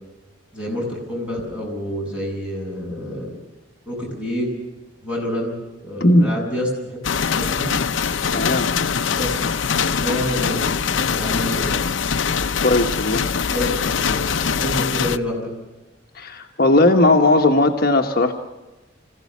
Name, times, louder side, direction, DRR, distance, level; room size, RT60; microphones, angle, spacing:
voice 1, 0.5-3.3 3.9-4.5 5.0-5.5 5.8-7.0 7.3-7.7 9.1-9.3 9.9-11.8 12.5-12.7 13.5-15.5, left 1 dB, 5° right, -3 dB, 7.9 m, -28 dB
voice 2, 6.0-6.3 8.3-8.7 12.6-13.2 16.1-18.3, left 2 dB, 50° left, 2 dB, 1.3 m, -17 dB
sound 1, 7.0-15.2, left 6 dB, 75° left, 0.7 m, -22 dB
25.5 x 16.0 x 7.3 m, 1.1 s
head